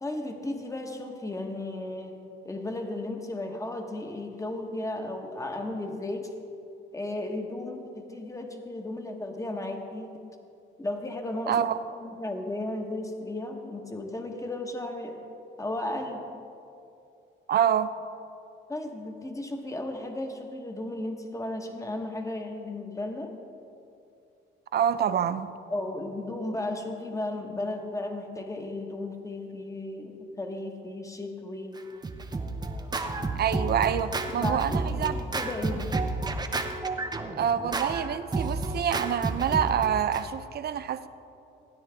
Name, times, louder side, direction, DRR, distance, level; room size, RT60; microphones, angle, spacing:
voice 1, 0.0-2.2 2.4-6.3 6.9-10.1 10.8-11.6 12.0-15.2 15.6-16.2 18.7-23.3 25.7-31.8 34.4-35.9, left 2 dB, 15° left, 3 dB, 1.3 m, -35 dB
voice 2, 11.5-11.8 17.5-17.9 24.7-25.5 33.0-35.1 37.4-41.1, right 9 dB, 55° right, 13 dB, 0.5 m, -27 dB
Scratching (performance technique), 31.8-40.2, right 3 dB, 20° right, 0.8 m, -31 dB
16.5 x 9.6 x 3.5 m, 2.6 s
cardioid pair, 90°, 20 cm